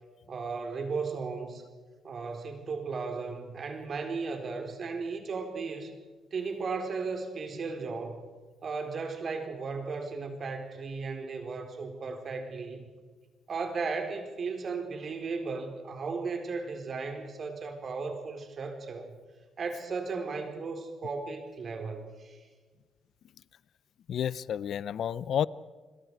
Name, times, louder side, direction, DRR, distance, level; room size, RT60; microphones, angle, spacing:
voice 1, 0.3-1.6 2.0-5.9 6.3-8.3 8.6-12.9 13.5-19.2 19.6-22.4, right 4 dB, 50° right, 5 dB, 4.4 m, -35 dB
voice 2, 24.1-25.5, left 9 dB, 65° left, 19 dB, 0.6 m, -30 dB
29.5 x 22.0 x 4.9 m, 1.4 s
cardioid pair, 90°, 0 cm